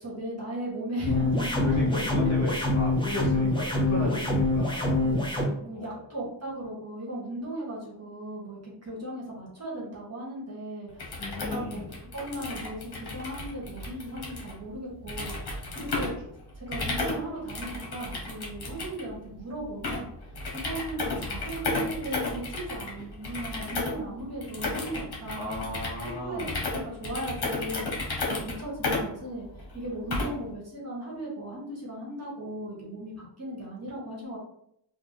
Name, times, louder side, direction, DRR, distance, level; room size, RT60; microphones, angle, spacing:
voice 1, 0.0-2.3 3.9-4.2 5.0-11.8 12.1-16.2 16.6-20.1 20.5-25.6 26.0-26.4 26.7-27.9 28.3-29.5 29.7-34.4, right 1 dB, 35° right, -4 dB, 1.3 m, -37 dB
sound 1, 1.1-5.5, left 2 dB, 10° left, 0.5 m, -25 dB
voice 2, 1.6-5.0 5.7-6.1 11.2-11.9 15.7-15.8 25.3-26.6, left 2 dB, 35° left, -5 dB, 1.3 m, -35 dB
sound 2, 10.9-30.5, left 2 dB, 55° left, 1.0 m, -34 dB
3.3 x 2.3 x 4.0 m, 0.72 s
wide cardioid pair, 150°, 46 cm